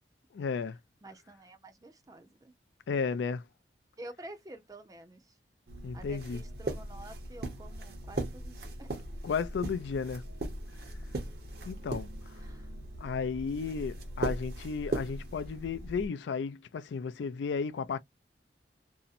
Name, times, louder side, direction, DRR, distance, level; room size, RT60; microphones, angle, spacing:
voice 1, 0.3-0.8 2.9-3.4 5.8-6.4 9.2-10.2 11.7-12.1 13.0-18.0, left 5 dB, 80° left, 0.3 m, -33 dB
voice 2, 1.0-2.5 4.0-5.4 5.9-9.0 12.3-12.7, right 1 dB, 20° right, 0.5 m, -49 dB
sound 1, 5.7-16.1, right 1 dB, 55° right, 0.7 m, -39 dB
2.7 x 2.0 x 2.4 m
head